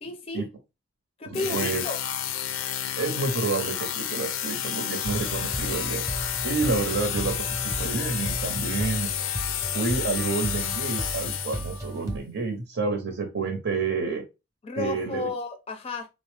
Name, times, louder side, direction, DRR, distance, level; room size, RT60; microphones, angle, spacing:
voice 1, 0.0-0.5 1.2-2.0 14.6-16.1, left 3 dB, 30° left, 0.4 m, -33 dB
voice 2, 1.2-1.8 3.0-6.0 6.4-9.1 9.7-14.2 14.8-15.3, right 4 dB, 65° right, 0.7 m, -29 dB
sound 1, 1.3-11.9, left 10 dB, 85° left, 0.4 m, -30 dB
sound 2, 5.0-12.2, right 1 dB, 15° right, 0.7 m, -35 dB
3.8 x 2.0 x 3.2 m
head